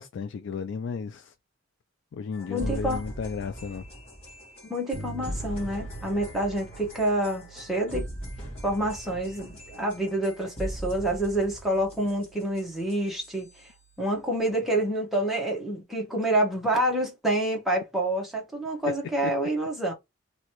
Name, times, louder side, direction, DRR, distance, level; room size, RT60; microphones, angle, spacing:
voice 1, 0.0-1.3 2.1-3.9 19.2-19.3, left 5 dB, 60° left, 0.3 m, -33 dB
sound 1, 2.3-13.7, equal, 30° left, 1.8 m, -40 dB
voice 2, 2.5-3.0 4.6-8.1 8.6-13.7 14.0-19.9, right 1 dB, ahead, 1.1 m, -27 dB
Bass guitar, 4.9-14.6, right 2 dB, 85° left, 1.4 m, -48 dB
3.0 x 2.7 x 2.9 m
head